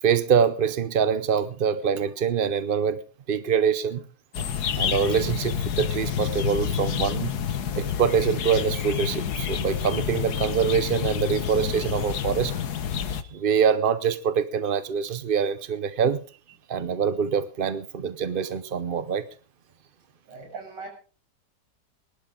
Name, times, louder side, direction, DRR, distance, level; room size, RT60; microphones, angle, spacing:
voice 1, 0.0-3.0 3.3-4.0 4.4-4.5 4.8-7.3 7.8-12.6 13.3-16.2 16.7-19.3, right 7 dB, 55° right, 13 dB, 0.6 m, -24 dB
sound 1, 4.3-13.2, left 8 dB, 65° left, 1.6 m, -28 dB
voice 2, 20.3-20.9, right 3 dB, 80° right, 2 dB, 7.4 m, -40 dB
22.0 x 12.0 x 3.7 m, 0.37 s
omnidirectional pair, 1.9 m